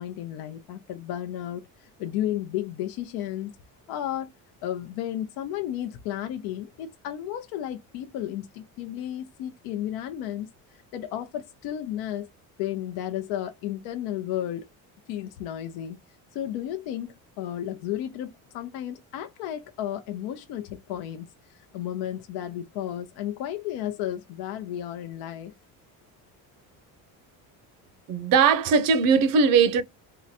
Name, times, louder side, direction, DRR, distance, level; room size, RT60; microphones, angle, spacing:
voice 1, 0.0-3.5 3.9-4.3 4.6-12.3 12.6-14.7 15.1-16.0 16.3-25.5, left 11 dB, 90° left, 0.6 m, -33 dB
voice 2, 28.1-29.8, right 6 dB, 65° right, 0.7 m, -19 dB
3.8 x 2.1 x 2.7 m
cardioid pair, 135°, 37 cm